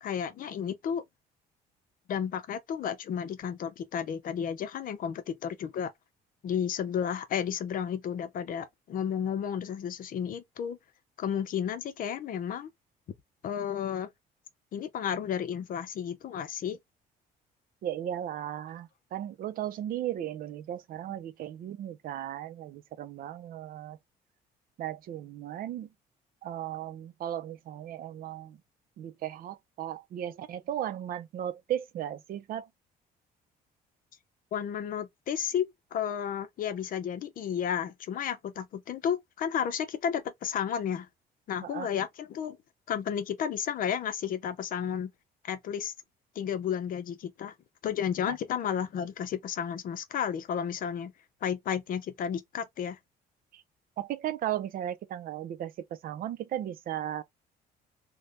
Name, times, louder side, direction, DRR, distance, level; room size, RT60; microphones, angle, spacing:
voice 1, 0.0-1.0 2.1-5.9 6.4-10.8 11.2-12.7 13.4-14.1 14.7-16.8 34.5-41.1 41.5-42.6 42.9-45.1 45.4-45.9 46.4-47.5 47.8-51.1 51.4-53.0, left 8 dB, 55° left, 0.6 m, -32 dB
voice 2, 17.8-24.0 24.8-25.9 26.4-28.6 29.0-32.7 41.6-41.9 48.3-48.4 53.5-53.6 54.0-57.2, right 11 dB, 60° right, 0.5 m, -36 dB
3.3 x 2.2 x 2.5 m
cardioid pair, 110°, 17 cm